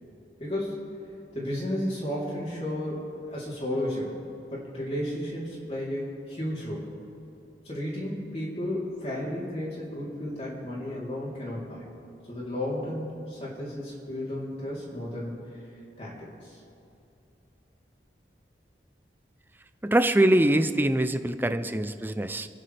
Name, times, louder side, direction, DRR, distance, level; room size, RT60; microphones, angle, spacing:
voice 1, 0.4-0.8 1.3-4.2 4.5-6.9 7.6-11.8 12.3-15.4 16.0-16.6, left 1 dB, 35° left, -6 dB, 3.5 m, -33 dB
voice 2, 19.8-22.5, right 1 dB, 10° right, 11 dB, 0.5 m, -23 dB
28.5 x 9.9 x 3.4 m, 2.8 s
head